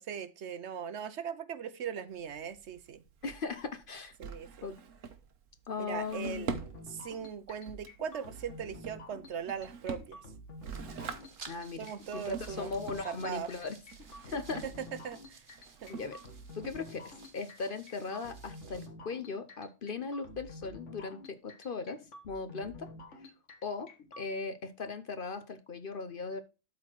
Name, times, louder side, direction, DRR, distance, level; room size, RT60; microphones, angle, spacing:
voice 1, 0.0-3.0 4.2-4.7 5.8-6.5 6.9-10.2 11.8-12.7 13.0-13.5 14.6-15.4 15.8-15.9, right 7 dB, 65° right, 0.9 m, -39 dB
Drawer open or close, 2.1-17.3, right 6 dB, 80° right, 1.3 m, -46 dB
voice 2, 3.2-4.1 4.6-4.8 5.7-6.6 11.5-11.9 12.1-13.8 14.3-14.7 15.9-16.2 16.5-22.9 23.2-23.3 23.6-23.9 24.2-26.4, left 4 dB, 50° left, 0.9 m, -38 dB
sound 1, 6.1-24.2, left 1 dB, 65° left, 1.8 m, -50 dB
sound 2, 10.6-18.9, right 4 dB, 40° right, 1.4 m, -56 dB
12.0 x 4.3 x 4.5 m
omnidirectional pair, 1.3 m